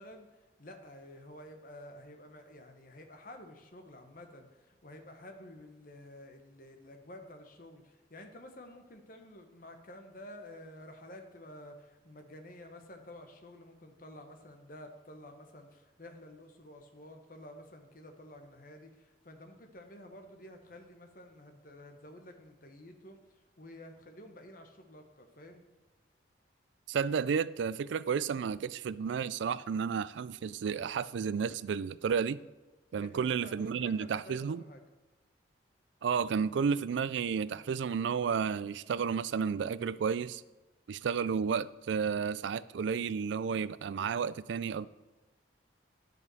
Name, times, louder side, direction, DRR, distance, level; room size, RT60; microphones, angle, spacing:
voice 1, 0.0-25.6 32.9-34.8, left 1 dB, 45° left, 1.1 m, -51 dB
voice 2, 26.9-32.4 32.9-34.6 36.0-40.4 40.9-44.9, right 6 dB, 75° right, 0.3 m, -32 dB
11.0 x 5.3 x 6.2 m
head